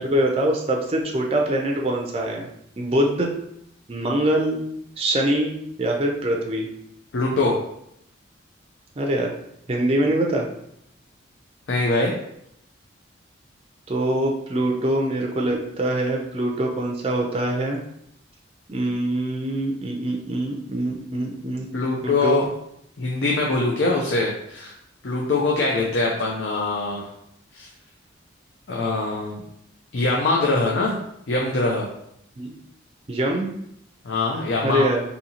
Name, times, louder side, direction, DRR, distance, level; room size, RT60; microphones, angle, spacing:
voice 1, 0.0-2.5 2.8-3.3 3.9-4.6 5.0-6.7 9.0-9.3 9.7-10.5 13.9-17.8 18.7-21.7 22.0-22.4 32.4-32.5 33.1-33.5 34.6-35.0, right 1 dB, 30° right, 0 dB, 0.4 m, -23 dB
voice 2, 7.1-7.5 11.7-12.1 21.7-22.5 23.0-24.7 25.0-27.1 27.5-27.7 28.7-29.4 29.9-31.0 31.3-31.9 34.0-34.8, left 2 dB, 70° left, -2 dB, 0.5 m, -23 dB
4.1 x 2.7 x 2.8 m, 0.75 s
head